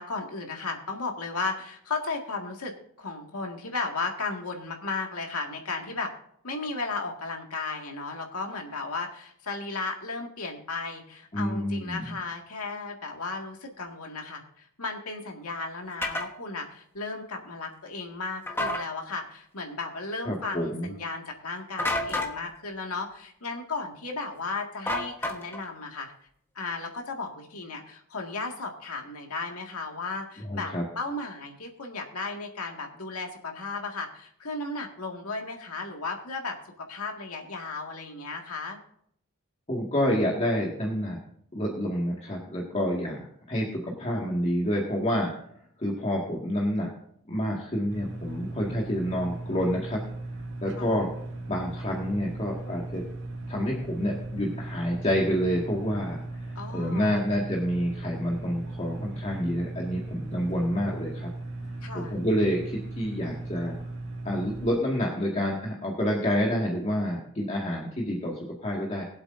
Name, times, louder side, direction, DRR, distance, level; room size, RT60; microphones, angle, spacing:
voice 1, 0.0-2.7 3.0-6.1 6.4-26.1 26.6-38.8 50.8-51.1 56.6-57.2 61.8-62.2, left 3 dB, 80° left, 2 dB, 2.0 m, -35 dB
voice 2, 11.3-12.1 20.3-20.9 30.5-30.8 39.7-41.2 41.5-43.2 43.5-45.3 45.8-46.9 47.3-50.0 50.6-51.1 51.5-53.0 53.5-61.3 61.9-63.8 64.2-69.0, equal, 30° left, -2 dB, 2.0 m, -28 dB
sound 1, 16.0-16.3 18.5-18.8 21.8-22.4 24.9-25.6, left 1 dB, 10° left, 1.2 m, -29 dB
sound 2, 47.9-64.7, right 2 dB, 55° right, 2.4 m, -37 dB
22.0 x 8.0 x 2.7 m, 0.68 s
head